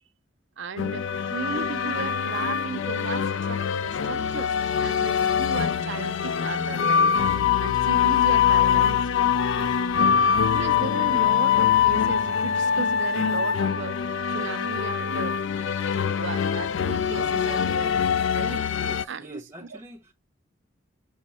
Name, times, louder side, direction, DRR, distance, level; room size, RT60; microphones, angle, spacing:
voice 1, 0.6-4.6 4.8-7.1 7.6-9.1 10.1-14.0 14.3-15.4 16.2-18.0 18.3-18.7 19.1-19.8, right 5 dB, 65° right, 0.5 m, -36 dB
sound 1, 0.8-19.0, left 7 dB, 70° left, 0.3 m, -23 dB
voice 2, 18.8-20.1, equal, 15° right, 0.9 m, -44 dB
6.0 x 2.0 x 4.2 m
head